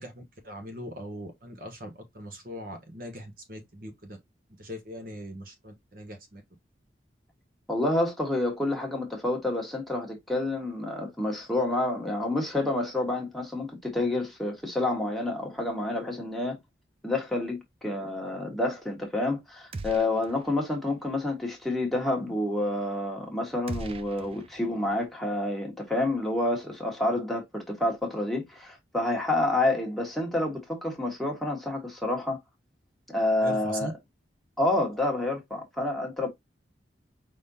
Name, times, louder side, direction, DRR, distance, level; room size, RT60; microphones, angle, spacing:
voice 1, 0.0-4.2 4.6-6.4 33.4-33.9, equal, 45° right, 1.0 m, -40 dB
voice 2, 7.7-16.6 17.0-32.4 33.1-33.9 34.6-36.3, left 2 dB, ahead, 1.4 m, -28 dB
sound 1, 19.7-20.6 20.9-21.0 23.7-25.0, right 3 dB, 30° right, 0.3 m, -40 dB
5.1 x 3.6 x 2.7 m
head